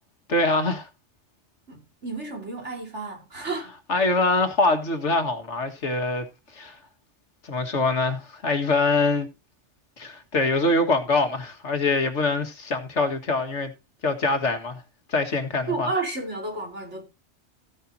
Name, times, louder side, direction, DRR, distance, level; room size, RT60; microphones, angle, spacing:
voice 1, 0.3-0.9 3.9-6.3 6.5-6.8 7.4-9.3 10.0-13.7 14.0-14.8 15.1-15.9, left 3 dB, 80° left, 2.1 m, -24 dB
voice 2, 1.7-3.7 15.7-17.0, right 3 dB, 80° right, 4.5 m, -31 dB
15.0 x 10.0 x 2.8 m
omnidirectional pair, 1.2 m